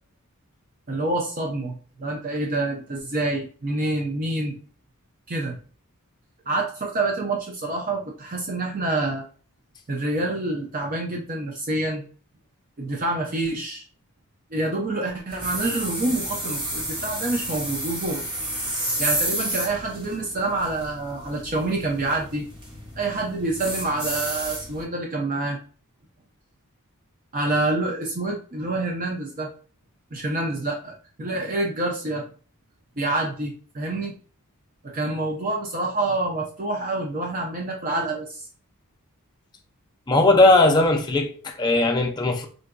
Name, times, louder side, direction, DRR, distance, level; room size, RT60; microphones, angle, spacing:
voice 1, 0.9-4.6 5.3-5.6 6.5-9.2 9.9-12.0 12.8-13.8 14.5-18.2 19.0-22.4 23.0-25.6 27.3-29.5 30.1-32.3 33.0-34.1 34.8-38.5, right 2 dB, 40° right, 0.5 m, -27 dB
sound 1, 15.3-24.8, right 1 dB, 20° right, 0.9 m, -31 dB
voice 2, 40.1-42.5, left 2 dB, 20° left, 0.4 m, -18 dB
3.8 x 2.5 x 2.2 m
head